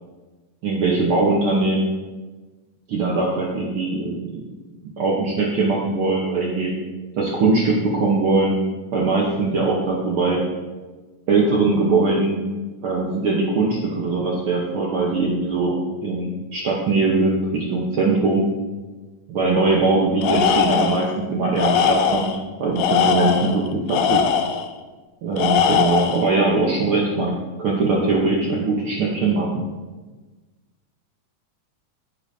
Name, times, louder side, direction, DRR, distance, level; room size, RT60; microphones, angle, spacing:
voice 1, 0.6-1.9 2.9-4.4 5.0-6.7 7.1-8.6 8.9-10.4 11.3-12.4 12.8-18.5 19.3-24.2 25.2-29.7, right 3 dB, 90° right, -3 dB, 1.1 m, -21 dB
Tools, 20.2-21.1 21.6-22.4 22.8-24.7 25.4-26.3, left 7 dB, 90° left, 1.5 m, -20 dB
10.0 x 8.5 x 2.7 m, 1.3 s
omnidirectional pair, 3.8 m